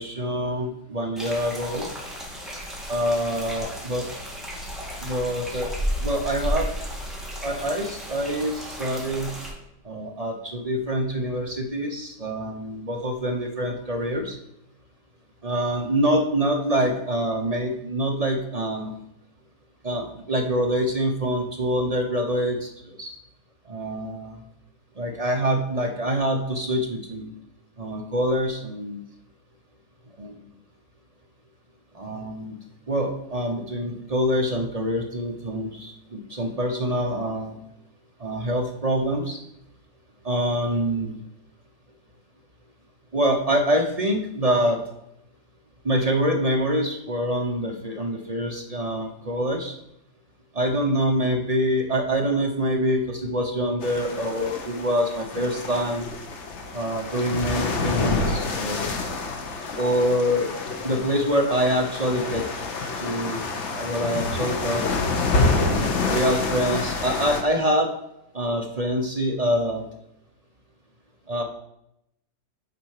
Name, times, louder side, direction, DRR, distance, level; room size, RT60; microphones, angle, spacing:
voice 1, 0.0-1.9 2.9-4.1 5.0-5.7 6.0-6.7 7.4-9.3 9.8-14.4 15.4-18.9 19.8-23.1 23.7-24.4 25.0-27.3 27.8-29.0 30.2-30.3 31.9-32.6 32.9-37.6 38.2-39.4 40.2-41.2 43.1-44.8 45.8-49.7 50.5-56.1 56.7-58.9 59.8-60.5 60.8-62.7 63.0-64.8 65.5-67.9 68.3-69.8 71.3-71.4, equal, 35° right, 1 dB, 0.6 m, -25 dB
sound 1, 1.2-9.5, equal, ahead, 1.7 m, -33 dB
sound 2, 53.8-67.4, left 3 dB, 50° left, 1.0 m, -28 dB
6.9 x 4.4 x 6.5 m, 0.80 s
omnidirectional pair, 1.9 m